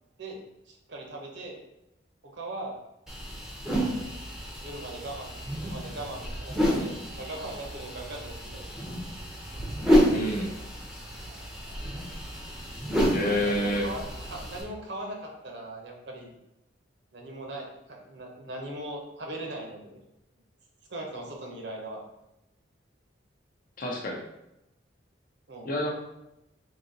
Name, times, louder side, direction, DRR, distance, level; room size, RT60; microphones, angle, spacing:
voice 1, 0.2-1.6 2.2-2.8 3.9-4.1 4.6-8.7 12.9-16.3 17.1-20.0 20.9-22.0 25.5-25.7, right 1 dB, 60° right, 1 dB, 0.7 m, -40 dB
sound 1, 3.1-14.6, equal, 5° right, 0.6 m, -30 dB
voice 2, 10.1-10.6 13.1-13.9 23.8-24.2 25.6-25.9, left 1 dB, 45° left, 1 dB, 0.6 m, -28 dB
4.0 x 2.7 x 2.6 m, 0.88 s
head